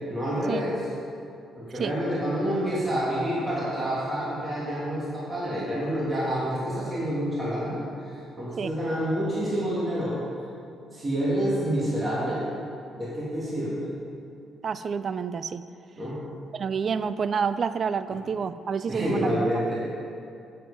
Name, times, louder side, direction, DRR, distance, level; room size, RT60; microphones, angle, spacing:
voice 1, 0.1-0.8 1.6-7.8 8.4-10.1 10.9-12.5 13.0-13.8 15.9-16.2 18.9-19.8, equal, 20° right, -8 dB, 2.4 m, -28 dB
voice 2, 14.6-15.6 16.5-19.5, right 6 dB, 50° right, 14 dB, 0.3 m, -28 dB
7.7 x 7.7 x 5.2 m, 2.5 s
cardioid pair, 90°, 0 cm